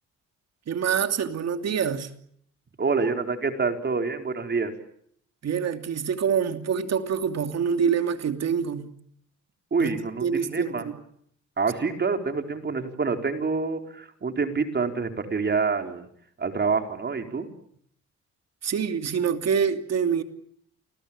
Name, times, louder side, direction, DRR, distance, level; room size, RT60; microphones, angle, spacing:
voice 1, 0.7-2.1 5.4-8.9 9.8-9.9 10.2-11.0 18.6-20.2, right 7 dB, 60° right, 2.9 m, -26 dB
voice 2, 2.8-4.7 9.7-10.9 11.6-16.1 16.4-17.5, right 4 dB, 35° right, 4.5 m, -27 dB
29.5 x 21.5 x 8.9 m
cardioid pair, 90°, 30 cm